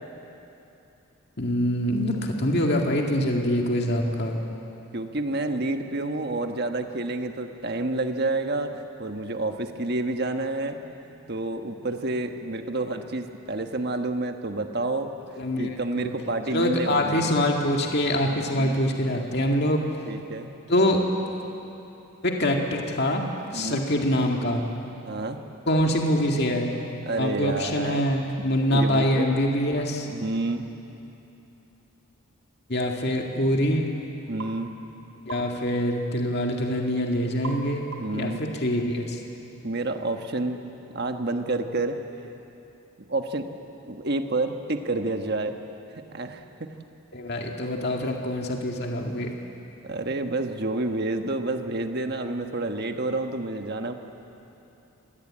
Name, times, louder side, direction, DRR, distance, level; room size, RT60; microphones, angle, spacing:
voice 1, 1.4-4.7 15.4-16.1 16.5-19.8 20.7-21.4 22.2-23.3 23.5-24.6 25.7-26.8 27.2-30.1 32.7-33.9 35.3-37.9 38.1-39.2 47.1-49.3, left 1 dB, 45° left, 1 dB, 2.0 m, -25 dB
voice 2, 4.9-10.8 11.1-15.1 15.6-17.3 18.6-18.8 20.0-20.5 23.5-23.8 25.0-25.4 27.0-28.0 28.7-29.3 30.1-30.6 34.3-34.7 38.0-38.4 39.6-42.0 43.1-43.5 43.9-45.6 46.1-46.4 49.8-53.9, right 2 dB, 45° right, 6 dB, 1.3 m, -29 dB
sound 1, 34.4-34.6 35.3-35.5 37.4-37.7 37.9-38.2, right 3 dB, 70° right, 3.9 m, -38 dB
25.5 x 19.5 x 8.8 m, 2.9 s
head